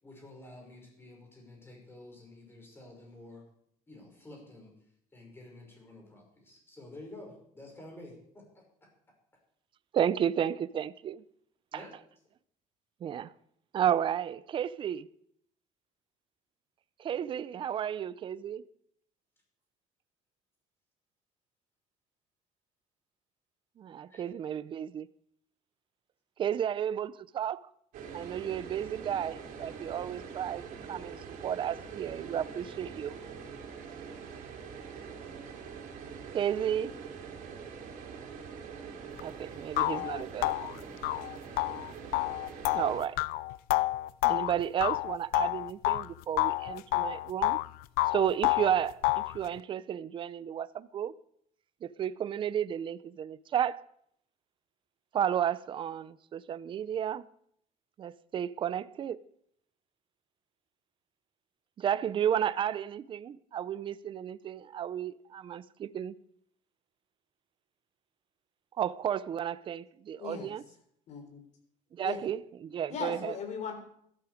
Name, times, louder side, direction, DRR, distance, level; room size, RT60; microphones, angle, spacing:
voice 1, 0.0-3.4 3.9-4.7 5.1-8.6 11.7-11.9 24.1-24.2, left 2 dB, 15° left, 5.9 m, -50 dB
voice 2, 9.9-11.2 11.7-11.8 13.0-13.3 13.7-15.1 17.0-18.6 23.8-25.1 26.4-27.7 28.1-30.6 30.9-33.2 36.3-36.9 39.2-40.7 42.7-43.2 44.2-47.6 48.1-51.1 51.8-53.8 55.1-57.2 58.0-59.2 61.8-66.1 68.8-70.6 71.9-73.3, right 9 dB, 35° right, 0.5 m, -32 dB
sound 1, 27.9-43.0, right 6 dB, 65° right, 3.5 m, -44 dB
sound 2, 39.2-39.3 39.8-46.1 46.4-47.7 48.0-49.4, left 19 dB, 85° left, 0.4 m, -29 dB
voice 3, 70.2-70.5 71.1-71.4 72.0-72.2 72.9-73.7, left 6 dB, 50° left, 3.7 m, -38 dB
16.0 x 12.5 x 5.1 m
cardioid pair, 150°, 15 cm